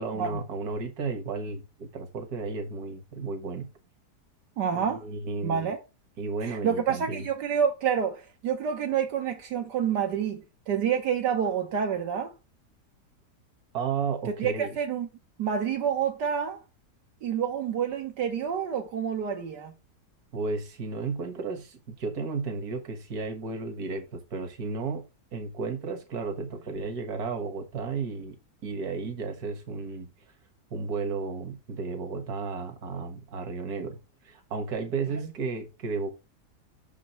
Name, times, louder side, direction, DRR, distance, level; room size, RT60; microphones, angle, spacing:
voice 1, 0.0-3.7 4.7-5.7 6.2-7.3 13.7-14.8 20.3-30.1 30.7-34.0 34.2-36.1, right 4 dB, 65° right, 1.9 m, -33 dB
voice 2, 4.6-5.0 5.4-5.8 6.4-12.3 14.4-15.1 15.4-16.6 17.2-19.7, right 7 dB, 85° right, 1.7 m, -28 dB
6.3 x 6.1 x 3.0 m
omnidirectional pair, 1.8 m